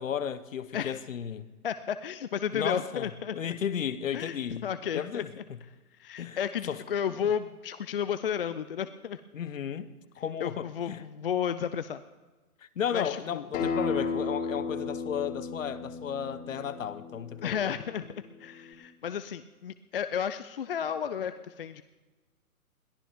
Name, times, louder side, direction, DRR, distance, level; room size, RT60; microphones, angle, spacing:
voice 1, 0.0-1.5 2.5-5.3 6.2-6.4 6.7-6.8 9.3-11.0 12.8-17.7, left 8 dB, 60° left, 1.0 m, -34 dB
voice 2, 1.6-3.4 4.1-4.4 4.6-5.2 6.0-9.2 10.4-12.0 12.9-13.5 17.4-18.1 18.4-21.8, left 8 dB, 40° left, 0.5 m, -32 dB
Acoustic guitar, 13.5-18.7, left 4 dB, 25° left, 2.7 m, -34 dB
21.5 x 14.5 x 3.6 m
figure-of-eight pair, 130°, 44 cm